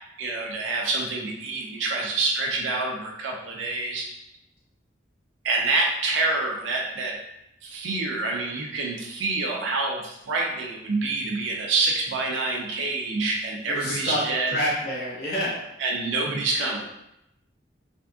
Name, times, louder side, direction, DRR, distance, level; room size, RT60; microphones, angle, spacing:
voice 1, 0.2-4.1 5.4-7.2 7.6-14.6 15.8-16.8, right 3 dB, 85° right, -1 dB, 0.5 m, -27 dB
voice 2, 13.7-15.5, equal, 50° left, -6 dB, 0.8 m, -28 dB
3.5 x 2.6 x 2.3 m, 0.84 s
head